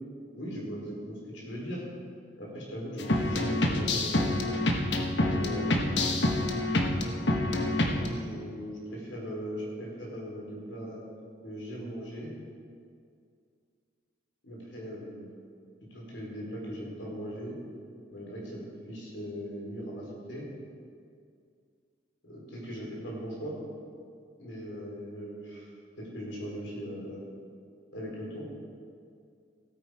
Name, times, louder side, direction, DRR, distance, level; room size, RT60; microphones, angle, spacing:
voice 1, 0.3-1.8 2.4-4.3 5.2-6.0 8.0-11.0 11.4-12.3 14.4-15.3 15.9-17.6 18.1-20.4 22.2-23.6 24.4-25.7 26.0-27.2 27.9-28.5, equal, 85° left, -3 dB, 3.9 m, -39 dB
sound 1, 3.0-8.1, left 1 dB, 65° left, 1.2 m, -27 dB
16.0 x 8.9 x 4.8 m, 2.3 s
head